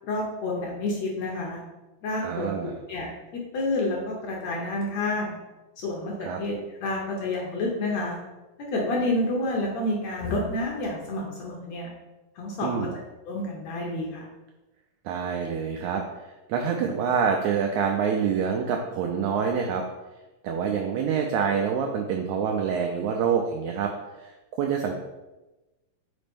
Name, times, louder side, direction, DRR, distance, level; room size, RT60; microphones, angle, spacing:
voice 1, 0.1-1.6 2.0-3.1 3.5-5.3 5.8-8.2 8.7-11.9 12.4-12.8 13.3-14.2, left 2 dB, 70° left, -1 dB, 1.8 m, -29 dB
voice 2, 2.2-2.8 6.2-6.4 12.6-13.0 15.0-16.0 16.5-19.9 20.4-24.9, right 6 dB, 85° right, 2 dB, 1.7 m, -26 dB
5.2 x 4.3 x 5.1 m, 1.1 s
omnidirectional pair, 3.9 m